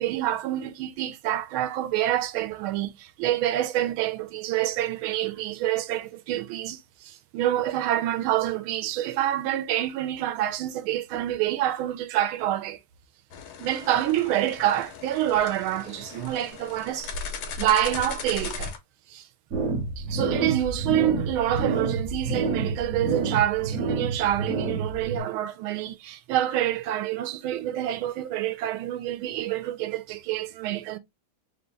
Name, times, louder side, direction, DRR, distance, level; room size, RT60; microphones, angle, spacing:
voice 1, 0.0-12.8 13.6-17.1 17.6-18.7 19.1-19.2 20.0-31.0, right 12 dB, 85° right, 1.4 m, -27 dB
sound 1, 13.3-18.8, left 4 dB, 90° left, 1.7 m, -37 dB
sound 2, 19.5-25.2, right 3 dB, 60° right, 0.8 m, -28 dB
3.7 x 2.3 x 3.9 m
omnidirectional pair, 2.2 m